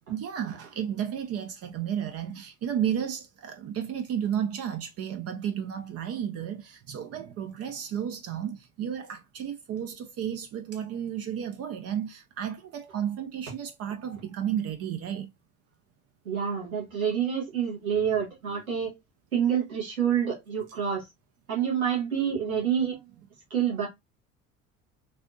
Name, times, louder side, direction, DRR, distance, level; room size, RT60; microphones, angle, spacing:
voice 1, 0.1-15.3, right 9 dB, 35° right, 0.5 m, -32 dB
voice 2, 16.2-18.9 19.3-21.1 21.5-23.0 23.5-23.9, right 8 dB, 85° right, 1.6 m, -27 dB
3.3 x 2.5 x 2.5 m
figure-of-eight pair, 60°, 41 cm